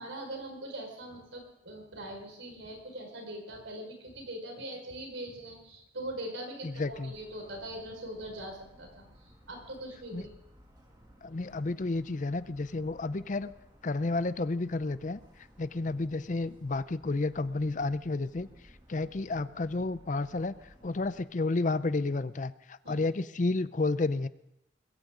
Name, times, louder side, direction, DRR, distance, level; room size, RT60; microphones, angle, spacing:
voice 1, 0.0-10.3 22.8-23.0, right 1 dB, 90° right, 2 dB, 5.2 m, -42 dB
voice 2, 6.6-7.1 10.1-10.2 11.2-13.5 13.8-15.2 15.6-18.5 18.9-20.5 20.8-24.3, left 3 dB, 40° left, 15 dB, 0.5 m, -31 dB
Motor vehicle (road) / Siren, 6.7-21.2, equal, 25° right, 2.6 m, -58 dB
21.0 x 16.5 x 3.8 m, 0.83 s
head